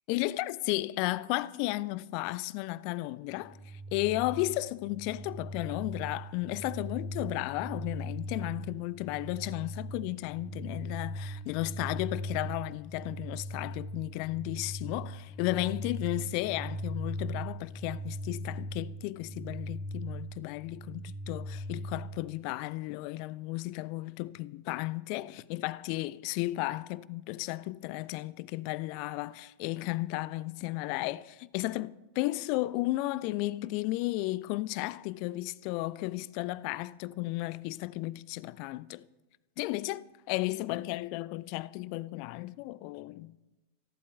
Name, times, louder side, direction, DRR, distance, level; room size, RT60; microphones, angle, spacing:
voice 1, 0.1-39.1 39.6-43.4, left 19 dB, 45° left, 0.5 m, -34 dB
sound 1, 3.3-22.2, equal, 5° left, 2.2 m, -40 dB
27.0 x 11.5 x 3.5 m
figure-of-eight pair, 90°, 0 cm